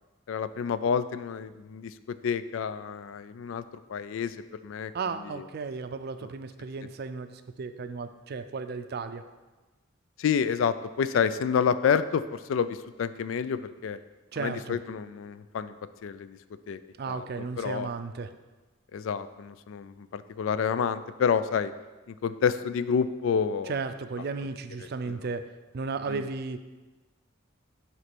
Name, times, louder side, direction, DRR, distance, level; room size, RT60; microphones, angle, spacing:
voice 1, 0.3-3.6 3.9-4.4 4.6-4.9 5.2-5.4 10.2-14.0 14.4-15.7 16.0-16.4 16.7-16.8 17.1-17.3 17.6-17.9 18.9-21.7 22.1-23.8 25.1-25.2 26.1-26.2, left 7 dB, 75° left, 13 dB, 0.3 m, -29 dB
voice 2, 4.9-9.2 14.3-14.8 17.0-18.3 23.7-25.4 25.7-26.6, right 4 dB, 50° right, 10 dB, 0.4 m, -34 dB
7.9 x 3.2 x 6.0 m, 1.2 s
head